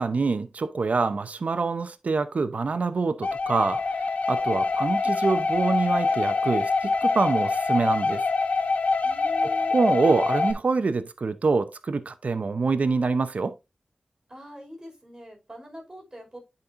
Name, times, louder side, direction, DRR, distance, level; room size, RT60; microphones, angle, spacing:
voice 1, 0.0-3.9 4.3-8.2 9.4-13.5, right 4 dB, 70° right, 0.7 m, -25 dB
sound 1, 3.2-10.5, left 4 dB, 75° left, 1.2 m, -25 dB
voice 2, 9.0-9.8 14.3-16.4, left 1 dB, 25° right, 5.0 m, -43 dB
9.7 x 5.3 x 2.6 m
cardioid pair, 45°, 2 cm